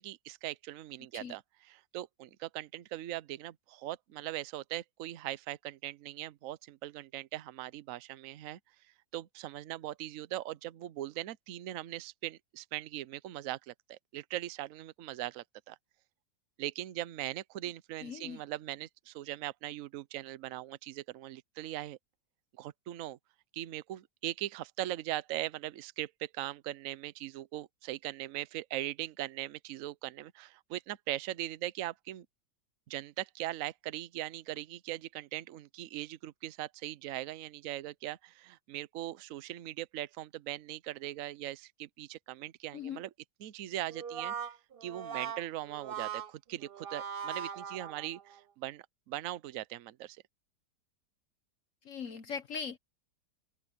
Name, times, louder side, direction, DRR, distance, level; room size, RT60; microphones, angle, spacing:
voice 1, 0.0-8.6 9.1-15.8 16.6-22.0 22.6-23.2 23.5-32.3 32.9-43.1 43.4-44.5 44.8-50.2, right 14 dB, 60° right, 0.9 m, -40 dB
voice 2, 18.0-18.4 42.7-43.0 51.8-52.8, left 6 dB, 55° left, 1.1 m, -40 dB
Brass instrument, 43.9-48.4, right 7 dB, 80° right, 0.5 m, -40 dB
omnidirectional pair, 2.0 m